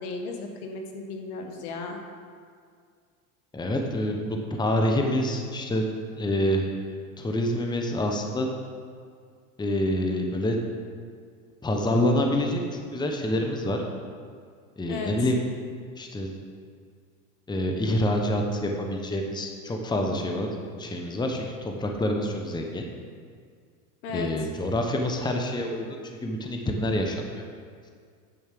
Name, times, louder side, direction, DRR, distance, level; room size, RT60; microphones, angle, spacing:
voice 1, 0.0-2.0 14.9-15.1 24.0-24.3, left 4 dB, 75° left, 3 dB, 1.6 m, -35 dB
voice 2, 3.5-5.8 6.2-6.7 7.2-8.5 9.6-10.6 11.6-13.8 14.8-15.4 16.0-16.3 17.5-22.8 24.1-25.9 26.2-27.4, left 1 dB, 10° left, 2 dB, 1.0 m, -27 dB
9.6 x 5.3 x 6.7 m, 2.1 s
hypercardioid pair, 100°, 45 cm